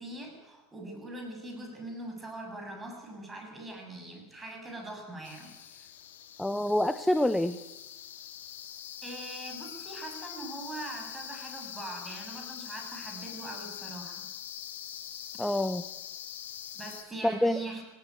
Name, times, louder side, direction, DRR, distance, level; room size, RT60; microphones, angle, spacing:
voice 1, 0.0-5.9 9.0-14.3 16.7-17.8, right 2 dB, 15° right, 3 dB, 7.3 m, -42 dB
sound 1, 5.2-17.0, left 10 dB, 80° left, 2.7 m, -43 dB
voice 2, 6.4-7.6 15.4-15.8 17.2-17.6, left 1 dB, 5° left, 12 dB, 0.8 m, -26 dB
18.5 x 17.5 x 9.6 m, 1.0 s
supercardioid pair, 110°, 0 cm